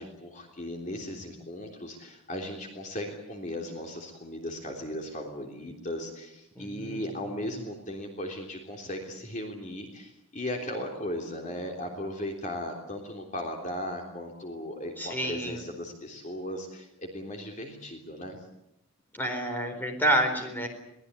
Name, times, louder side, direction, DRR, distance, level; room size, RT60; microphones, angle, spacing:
voice 1, 0.0-18.4, left 1 dB, 35° left, 2 dB, 3.4 m, -37 dB
voice 2, 6.6-7.0 15.0-15.6 19.1-20.7, right 1 dB, 10° left, 4 dB, 4.3 m, -28 dB
23.0 x 19.5 x 9.7 m, 0.82 s
head